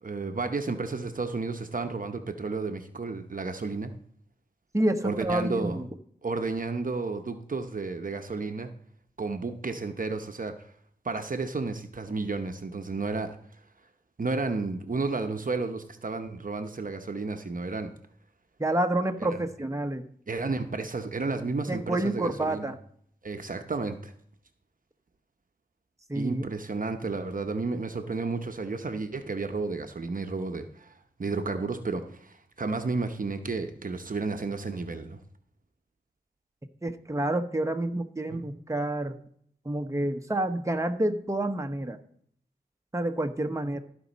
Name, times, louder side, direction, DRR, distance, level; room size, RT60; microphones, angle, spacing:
voice 1, 0.0-3.9 5.0-5.8 6.2-8.7 9.2-10.7 11.0-13.4 14.2-17.9 19.3-19.4 20.3-22.7 23.2-24.1 26.1-35.2 38.3-38.4, right 3 dB, 50° right, 6 dB, 0.8 m, -32 dB
voice 2, 4.7-5.9 18.6-20.0 21.7-22.8 26.1-26.5 36.8-39.1 39.6-42.0 42.9-43.8, right 1 dB, 20° right, 6 dB, 1.0 m, -28 dB
15.0 x 5.3 x 4.1 m, 0.64 s
cardioid pair, 45°, 17 cm